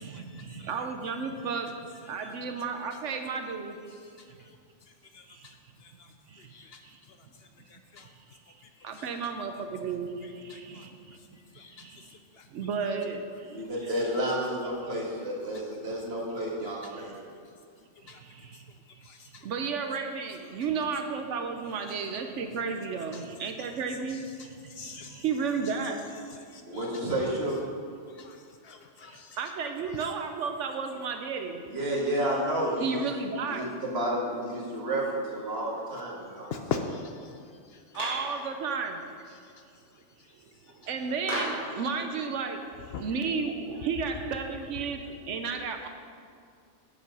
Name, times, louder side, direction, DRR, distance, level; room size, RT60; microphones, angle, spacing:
voice 1, 0.0-1.7 2.1-3.8 4.3-4.4 5.3-5.5 6.3-6.5 6.8-7.0 8.3-8.6 8.8-11.4 11.7-12.2 12.5-13.6 16.9-17.1 18.0-18.7 19.4-26.1 29.0-31.6 32.8-33.7 37.9-39.0 40.7-45.9, right 5 dB, 75° right, 5 dB, 1.0 m, -33 dB
voice 2, 10.5-10.8 11.5-11.8 18.1-18.2 19.1-19.4 24.8-25.2 26.5-26.6 28.2-28.4 28.6-29.4 36.5-37.1 42.9-43.0, left 6 dB, 65° left, 6 dB, 0.7 m, -38 dB
voice 3, 13.4-17.3 26.7-27.7 31.7-33.1 33.4-36.5, right 1 dB, 55° right, -3 dB, 2.0 m, -31 dB
Clapping, 37.9-38.3 41.3-41.7, equal, 40° left, 3.0 m, -32 dB
8.3 x 7.5 x 5.4 m, 2.3 s
omnidirectional pair, 1.3 m